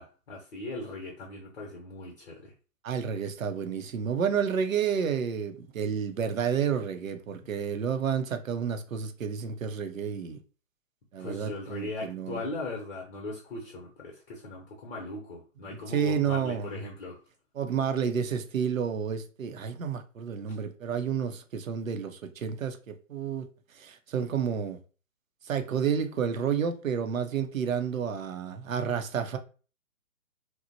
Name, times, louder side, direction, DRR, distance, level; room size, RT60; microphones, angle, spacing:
voice 1, 0.0-2.5 11.2-17.2, left 2 dB, 50° left, 0.8 m, -39 dB
voice 2, 2.8-10.4 11.1-12.4 15.7-16.8 17.5-23.5 23.7-24.8 25.4-29.4, right 7 dB, 75° right, 0.6 m, -30 dB
2.9 x 2.0 x 2.6 m
figure-of-eight pair, 130°, 40 cm